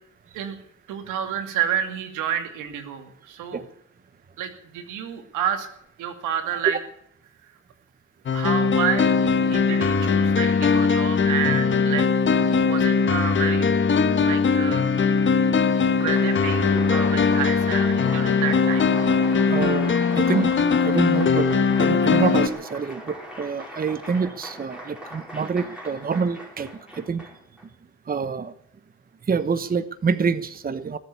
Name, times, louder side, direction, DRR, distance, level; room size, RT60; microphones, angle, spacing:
voice 1, 0.9-3.6 4.4-5.7 6.0-6.8 8.3-9.1 9.4-12.1 12.6-13.7 14.2-14.9 15.6-18.9, right 9 dB, 90° right, 7 dB, 2.5 m, -29 dB
sound 1, 8.3-22.5, left 5 dB, 40° left, 1.2 m, -20 dB
Applause, 15.7-27.6, equal, 5° right, 5.2 m, -39 dB
voice 2, 19.5-21.5 21.8-27.3 28.1-28.5 29.3-31.0, right 5 dB, 30° right, 13 dB, 1.0 m, -27 dB
20.0 x 8.1 x 8.5 m, 0.69 s
cardioid pair, 90°, 30 cm